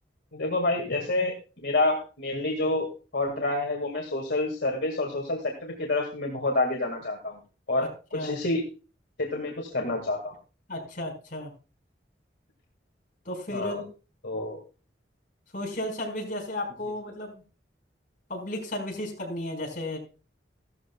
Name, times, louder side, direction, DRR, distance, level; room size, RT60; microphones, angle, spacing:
voice 1, 0.3-1.3 1.6-7.4 7.7-8.7 9.2-10.3 13.5-13.8 14.2-14.6, left 2 dB, 65° left, 1 dB, 1.9 m, -28 dB
voice 2, 7.8-8.3 10.7-11.5 13.2-13.8 15.5-17.4 18.3-20.0, left 1 dB, 45° left, 0 dB, 4.6 m, -34 dB
15.5 x 13.0 x 2.3 m, 0.33 s
head